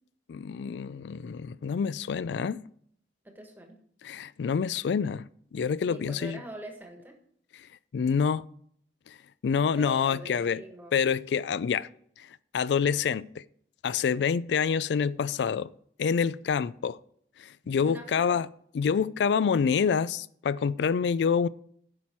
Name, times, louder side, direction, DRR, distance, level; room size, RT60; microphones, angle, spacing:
voice 1, 0.3-2.6 4.0-5.3 5.5-6.4 7.9-8.5 9.1-9.2 9.4-10.6 10.9-11.9 12.2-12.3 12.5-13.4 13.8-15.7 16.0-17.0 17.4-18.5 18.8-21.5, left 6 dB, 80° left, 0.3 m, -27 dB
voice 2, 3.2-3.8 5.9-7.2 9.8-10.9 17.8-18.4, right 1 dB, 10° right, 1.4 m, -43 dB
9.6 x 6.0 x 4.5 m
head